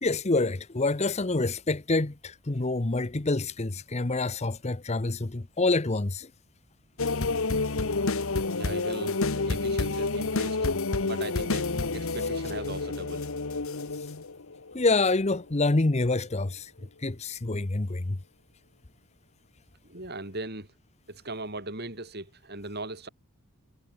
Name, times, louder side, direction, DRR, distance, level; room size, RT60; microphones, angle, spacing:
voice 1, 0.0-6.3 14.7-16.7 17.0-18.2, left 2 dB, 30° left, 0.8 m, -27 dB
sound 1, 7.0-15.0 15.4-15.6, left 3 dB, 65° left, 1.2 m, -29 dB
voice 2, 8.5-10.6 11.0-13.3 16.8-16.9 19.8-20.7 21.1-23.1, right 2 dB, 45° right, 6.1 m, -39 dB
head